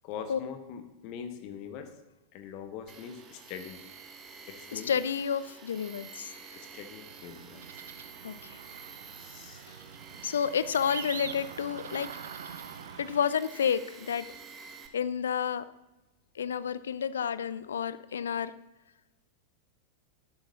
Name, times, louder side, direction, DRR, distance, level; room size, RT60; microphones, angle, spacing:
voice 1, 0.0-1.9 2.3-3.8 4.5-4.9 6.5-7.6 9.2-9.8, left 7 dB, 45° left, 7 dB, 1.2 m, -42 dB
Tools, 2.9-14.9, right 5 dB, 25° right, 1.0 m, -49 dB
voice 2, 4.7-6.3 8.2-8.6 10.2-12.1 13.0-14.3 14.9-15.7 16.4-18.5, left 7 dB, 65° left, 16 dB, 0.4 m, -30 dB
sound 1, 7.1-13.2, right 7 dB, 65° right, 0.6 m, -44 dB
11.0 x 10.0 x 2.8 m, 0.99 s
figure-of-eight pair, 90°, 0 cm